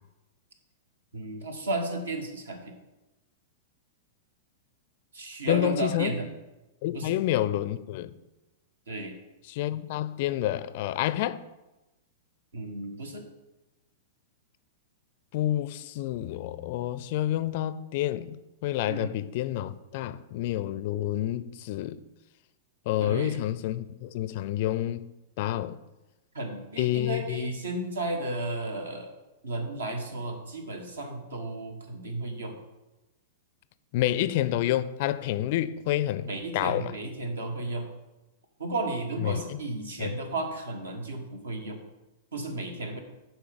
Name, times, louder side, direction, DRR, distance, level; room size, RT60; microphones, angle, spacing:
voice 1, 1.1-2.7 5.1-6.3 6.9-7.1 8.9-9.1 12.5-13.2 18.9-19.1 23.0-23.4 26.3-29.1 29.4-32.6 33.9-34.0 36.2-37.9 38.6-41.8 42.3-43.0, right 2 dB, 70° right, 1.4 m, -33 dB
voice 2, 5.5-6.1 6.8-8.1 9.5-11.4 15.3-18.4 18.6-22.0 22.9-25.1 25.4-25.8 26.8-27.5 33.9-36.9 39.2-39.6 40.0-40.1, left 13 dB, 45° left, 0.4 m, -29 dB
10.5 x 4.5 x 5.1 m
figure-of-eight pair, 100°, 0 cm